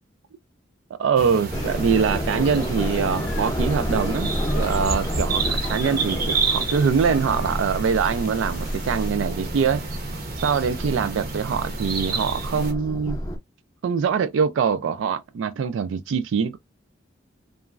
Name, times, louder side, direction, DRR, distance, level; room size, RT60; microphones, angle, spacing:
voice 1, 1.0-9.8 10.4-13.2 13.8-16.6, right 6 dB, 75° right, 0.3 m, -23 dB
sound 1, 1.2-12.7, right 4 dB, 50° right, 0.7 m, -30 dB
sound 2, 1.5-9.1, left 5 dB, 70° left, 0.5 m, -42 dB
sound 3, 1.5-13.4, equal, 20° left, 0.6 m, -30 dB
2.9 x 2.4 x 2.3 m
head